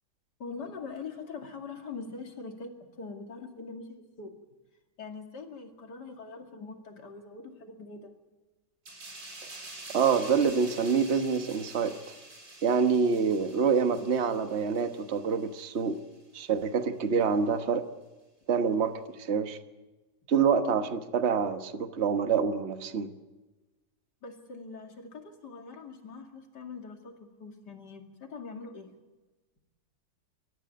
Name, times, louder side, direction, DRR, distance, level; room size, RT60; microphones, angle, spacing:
voice 1, 0.4-4.3 5.0-8.1 24.2-28.9, left 4 dB, 70° left, 3 dB, 3.0 m, -43 dB
sound 1, 8.9-16.0 16.4-16.6, right 2 dB, 75° right, 4.9 m, -47 dB
voice 2, 9.9-12.1 12.6-16.0 16.3-17.8 18.5-19.6 20.3-23.1, right 6 dB, 40° right, 8 dB, 1.4 m, -26 dB
26.5 x 13.5 x 9.3 m, 1.2 s
omnidirectional pair, 1.9 m